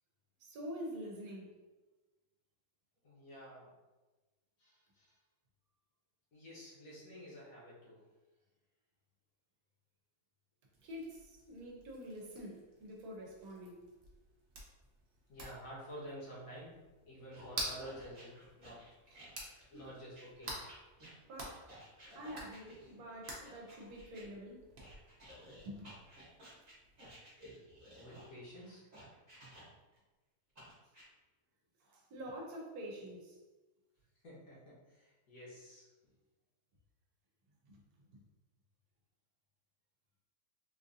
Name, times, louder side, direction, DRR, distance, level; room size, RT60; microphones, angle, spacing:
voice 1, 0.4-1.6 10.8-13.8 19.1-19.3 21.3-21.8 22.1-24.7 25.6-25.9 31.8-33.4 37.7-37.8 38.1-38.2, equal, 75° right, -1 dB, 1.2 m, -47 dB
voice 2, 3.0-3.7 4.6-5.2 6.3-8.0 15.3-16.8 17.0-18.7 19.7-20.6 27.9-28.8 34.2-35.9, equal, 65° left, -7 dB, 1.6 m, -50 dB
sound 1, 10.7-27.1, right 1 dB, 45° right, 0.8 m, -50 dB
werewolf bites, 17.3-24.2 24.8-30.0 30.5-31.0, equal, 30° right, 1.1 m, -56 dB
3.8 x 2.6 x 2.5 m, 1.1 s
omnidirectional pair, 1.7 m